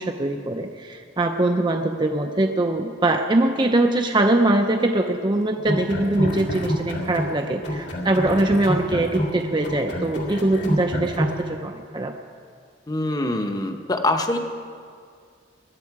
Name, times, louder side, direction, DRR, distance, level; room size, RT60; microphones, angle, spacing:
voice 1, 0.0-12.1, right 2 dB, 25° right, 4 dB, 0.6 m, -22 dB
sound 1, 5.6-7.4 7.6-11.4, equal, 75° left, 2.3 m, -27 dB
voice 2, 12.9-14.4, left 2 dB, 20° left, 6 dB, 0.9 m, -24 dB
21.0 x 12.0 x 4.8 m, 2.2 s
head